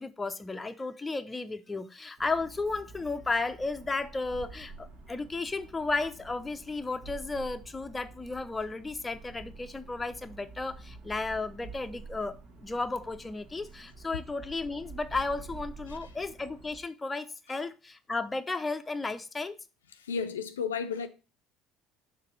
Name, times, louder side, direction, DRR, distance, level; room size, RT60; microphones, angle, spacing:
voice 1, 0.0-19.6, left 3 dB, 20° left, 0.6 m, -34 dB
sound 1, 2.2-16.8, right 3 dB, 55° right, 1.4 m, -48 dB
voice 2, 20.0-21.1, left 6 dB, 80° left, 0.5 m, -32 dB
6.6 x 3.3 x 5.8 m
figure-of-eight pair, 60°, 0 cm